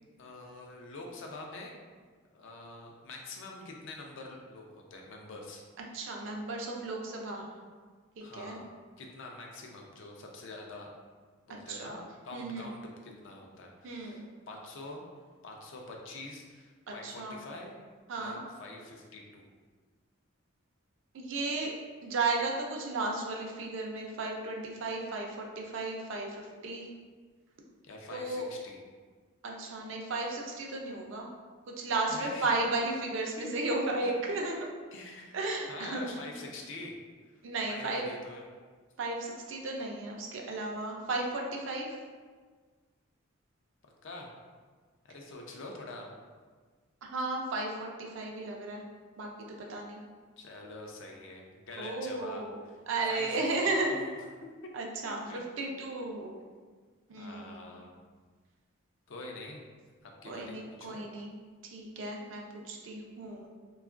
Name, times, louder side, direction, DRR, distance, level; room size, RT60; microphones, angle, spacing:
voice 1, 0.2-1.7 2.3-5.6 8.2-8.7 9.0-10.9 11.5-12.0 12.2-15.0 15.4-17.7 18.2-19.4 27.8-28.8 32.1-32.5 33.4-33.5 34.0-34.1 34.9-35.4 35.6-36.9 37.7-38.5 44.0-44.3 45.0-46.1 50.4-52.8 53.1-54.2 55.3-55.4 57.2-57.9 59.1-59.6 60.0-61.0, left 2 dB, 65° left, 0 dB, 0.4 m, -45 dB
voice 2, 5.9-7.4 8.2-8.6 11.7-12.0 12.3-12.7 13.8-14.3 16.9-17.4 18.1-18.4 21.1-21.7 22.0-26.9 28.1-28.4 29.4-31.3 31.8-34.7 35.3-36.1 37.4-38.0 39.0-41.9 47.0-48.8 49.2-50.0 51.8-52.6 52.9-54.0 54.7-56.3 57.1-57.6 60.2-61.3 61.7-63.5, right 2 dB, 65° right, 0 dB, 0.4 m, -34 dB
2.8 x 2.3 x 2.4 m, 1.5 s
head